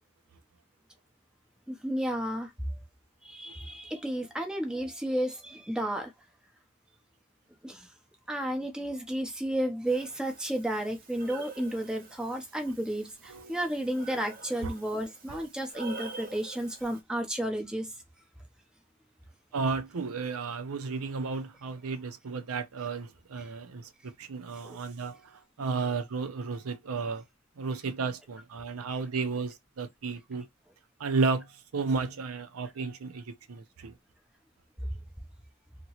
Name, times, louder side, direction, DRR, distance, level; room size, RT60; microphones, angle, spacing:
voice 1, 1.7-2.5 3.2-6.1 7.6-7.9 8.3-17.9 24.6-24.8, right 1 dB, 5° right, 0.6 m, -32 dB
Breathing, 9.9-17.0, right 3 dB, 40° right, 0.6 m, -47 dB
voice 2, 13.3-13.6 14.6-14.7 15.3-15.5 19.5-27.2 27.6-30.5 31.0-33.9, right 4 dB, 90° right, 0.6 m, -33 dB
2.9 x 2.8 x 2.8 m
head